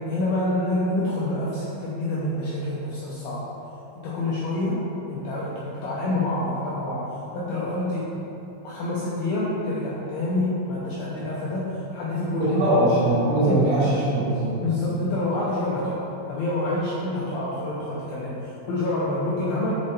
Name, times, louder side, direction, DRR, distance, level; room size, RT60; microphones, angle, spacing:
voice 1, 0.0-3.5 4.0-7.1 7.3-8.1 8.6-12.8 13.5-13.6 14.6-19.7, left 2 dB, 80° left, -7 dB, 2.2 m, -27 dB
voice 2, 12.4-14.6, right 1 dB, 60° right, -10 dB, 2.8 m, -21 dB
7.4 x 4.9 x 4.3 m, 2.9 s
omnidirectional pair, 5.4 m